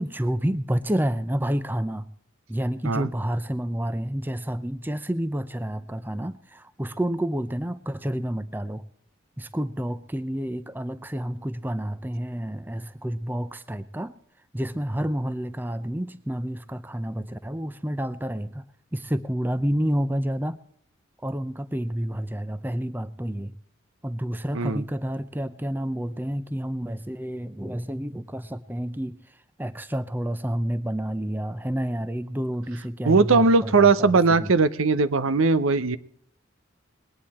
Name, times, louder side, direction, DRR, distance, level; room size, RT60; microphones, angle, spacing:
voice 1, 0.0-2.1 2.5-8.8 9.4-14.1 14.5-18.7 18.9-20.6 21.2-23.5 24.0-34.5, equal, 10° right, 13 dB, 0.5 m, -29 dB
voice 2, 33.0-36.0, right 4 dB, 90° right, 14 dB, 0.8 m, -19 dB
21.0 x 9.7 x 4.3 m, 0.62 s
head